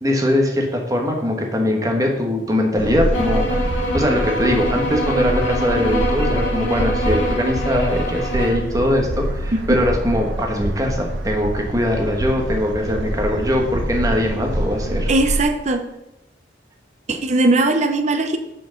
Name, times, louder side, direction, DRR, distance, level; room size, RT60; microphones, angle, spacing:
voice 1, 0.0-15.1, left 1 dB, 20° right, 2 dB, 1.1 m, -21 dB
sound 1, 2.8-15.4, right 1 dB, 70° right, 0.9 m, -26 dB
sound 2, 3.1-8.6, equal, 80° left, 2.2 m, -24 dB
voice 2, 15.1-15.8 17.1-18.4, right 2 dB, 35° right, 6 dB, 0.7 m, -19 dB
6.2 x 4.5 x 6.4 m, 0.90 s
head